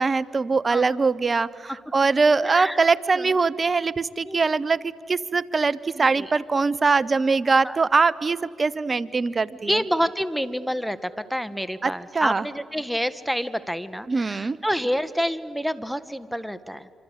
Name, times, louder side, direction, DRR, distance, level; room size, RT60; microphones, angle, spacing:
voice 1, 0.0-1.5 1.9-9.7 11.8-12.4 14.1-14.6, right 4 dB, 40° right, 18 dB, 1.0 m, -22 dB
voice 2, 2.4-2.8 3.1-3.4 4.2-4.4 5.9-6.3 7.6-7.8 9.5-16.9, equal, ahead, 13 dB, 1.6 m, -28 dB
26.5 x 26.0 x 8.3 m, 2.1 s
supercardioid pair, 50°, 0 cm